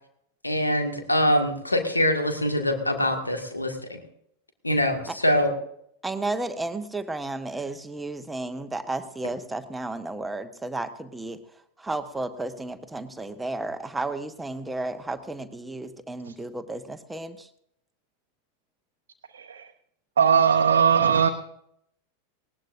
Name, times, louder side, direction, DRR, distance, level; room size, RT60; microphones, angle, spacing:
voice 1, 0.4-4.0 4.6-5.5, left 1 dB, 80° left, 4 dB, 2.0 m, -24 dB
voice 2, 6.0-11.4 11.8-17.5, right 2 dB, 10° right, 9 dB, 1.2 m, -33 dB
voice 3, 19.3-19.7 20.2-21.3, right 7 dB, 65° right, 4 dB, 0.9 m, -19 dB
19.5 x 18.0 x 2.6 m, 0.73 s
figure-of-eight pair, 90°, 0 cm